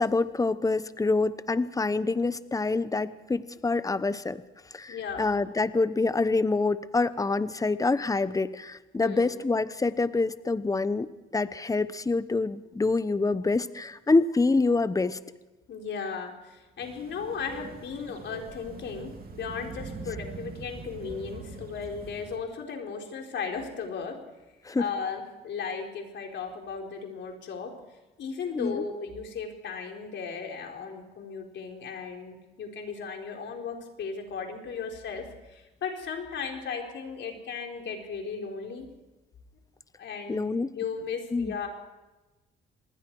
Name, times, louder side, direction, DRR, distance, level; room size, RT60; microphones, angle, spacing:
voice 1, 0.0-4.4 4.7-15.2 24.6-24.9 28.5-28.8 40.3-40.8 41.3-41.5, left 3 dB, 15° left, 14 dB, 0.9 m, -26 dB
voice 2, 4.9-5.4 9.0-9.4 15.7-24.2 24.8-27.7 28.2-38.9 40.0-40.4 40.8-41.7, left 5 dB, 65° left, 2 dB, 4.1 m, -36 dB
sound 1, 16.8-22.4, right 4 dB, 50° right, 3.3 m, -42 dB
27.0 x 20.5 x 4.7 m, 1.1 s
cardioid pair, 90°, 20 cm